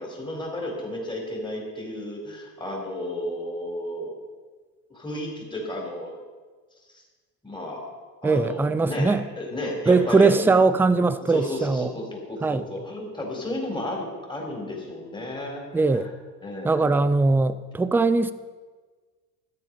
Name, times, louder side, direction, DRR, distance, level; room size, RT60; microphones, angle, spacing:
voice 1, 0.0-4.2 4.9-6.1 7.4-7.8 8.2-10.5 11.3-15.7 15.9-16.1 16.4-17.0, left 1 dB, 10° left, 4.2 m, -32 dB
voice 2, 8.2-9.2 9.9-11.9 12.4-12.7 15.7-16.1 16.6-18.3, right 3 dB, 5° right, 0.4 m, -20 dB
13.0 x 10.0 x 5.4 m
supercardioid pair, 100°, 41 cm